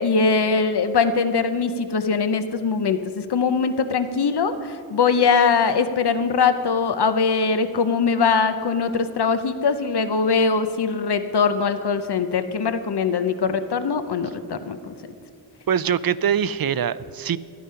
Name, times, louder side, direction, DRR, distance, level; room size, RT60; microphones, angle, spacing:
voice 1, 0.0-14.9, left 5 dB, 80° left, 10 dB, 0.7 m, -21 dB
voice 2, 15.7-17.4, right 8 dB, 65° right, 17 dB, 0.5 m, -23 dB
14.5 x 11.5 x 5.6 m, 2.3 s
wide cardioid pair, 75°, 39 cm